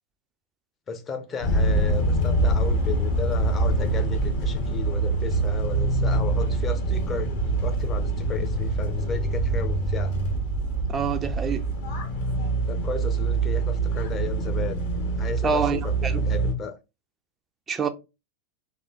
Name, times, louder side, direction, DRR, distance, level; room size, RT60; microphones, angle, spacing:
voice 1, 0.9-7.3 7.6-10.1 12.7-14.8 15.2-16.8, left 5 dB, 25° left, 0.8 m, -34 dB
sound 1, 1.4-16.5, right 2 dB, 50° left, 1.4 m, -25 dB
voice 2, 10.9-11.7 15.4-16.2 17.7-17.9, right 6 dB, 20° right, 0.5 m, -26 dB
4.1 x 3.0 x 3.9 m
figure-of-eight pair, 90°, 0 cm